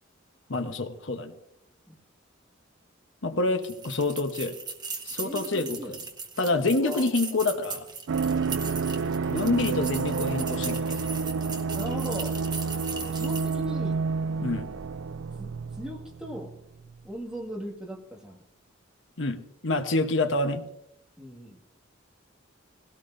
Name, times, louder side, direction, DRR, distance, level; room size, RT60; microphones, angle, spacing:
voice 1, 0.5-1.3 3.2-4.6 5.0-6.0 6.4-7.9 9.3-11.0 14.4-14.7 19.2-19.4 19.6-20.6, left 2 dB, 70° left, 7 dB, 1.0 m, -27 dB
sound 1, 3.6-13.7, right 5 dB, 20° right, 1.3 m, -39 dB
voice 2, 5.2-5.9 6.8-7.1 11.7-12.4 12.9-14.0 15.4-16.6 17.0-18.4 21.2-21.6, equal, 5° right, -1 dB, 1.9 m, -39 dB
sound 2, 8.1-16.6 16.8-17.0, right 5 dB, 80° right, 0.4 m, -29 dB
19.0 x 17.0 x 2.6 m, 0.79 s
head